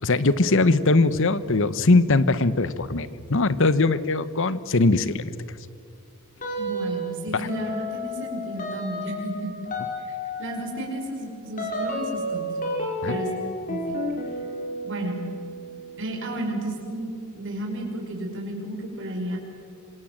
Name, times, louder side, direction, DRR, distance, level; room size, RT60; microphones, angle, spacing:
voice 1, 0.0-5.3 7.3-7.5 13.0-13.2, left 3 dB, 60° left, 15 dB, 1.1 m, -21 dB
sound 1, 6.4-7.1 7.5-17.8, equal, 40° left, 5.1 m, -32 dB
voice 2, 6.6-9.5 10.0-12.5 13.0-13.4 13.7-14.0 14.8-15.2 16.0-19.4, right 1 dB, 60° right, 2 dB, 5.7 m, -32 dB
27.0 x 26.5 x 7.7 m, 2.6 s
head